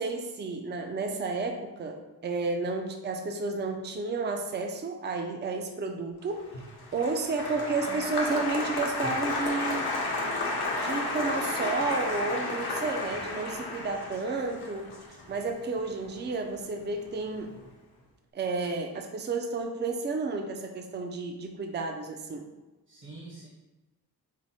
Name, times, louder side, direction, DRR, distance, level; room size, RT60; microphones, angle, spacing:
voice 1, 0.0-6.5 6.9-9.9 10.8-14.9 15.3-17.5 18.3-22.5, right 3 dB, 30° right, 4 dB, 0.4 m, -31 dB
Applause, 6.4-16.8 17.1-17.7, left 2 dB, 70° left, 0.8 m, -32 dB
voice 2, 7.5-8.0 22.9-23.5, right 2 dB, 50° right, -4 dB, 0.9 m, -46 dB
4.5 x 2.1 x 4.1 m, 1.1 s
wide cardioid pair, 135°, 40 cm